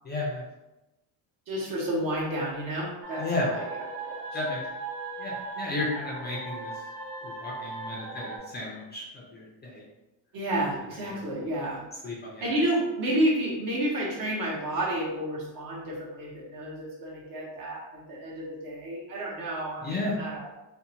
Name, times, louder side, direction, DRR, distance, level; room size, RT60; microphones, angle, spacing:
voice 1, 0.0-0.4 3.2-3.5 4.3-4.6 5.2-6.8 7.2-9.8 12.0-12.5 19.8-20.2, left 2 dB, 25° left, -3 dB, 0.4 m, -33 dB
voice 2, 1.5-3.6 4.0-4.5 10.3-11.8 12.4-20.5, right 1 dB, 50° right, -4 dB, 0.9 m, -30 dB
sound 1, 3.0-8.4, right 3 dB, 90° right, 0.8 m, -38 dB
2.6 x 2.0 x 2.7 m, 1.0 s
cardioid pair, 125°, 43 cm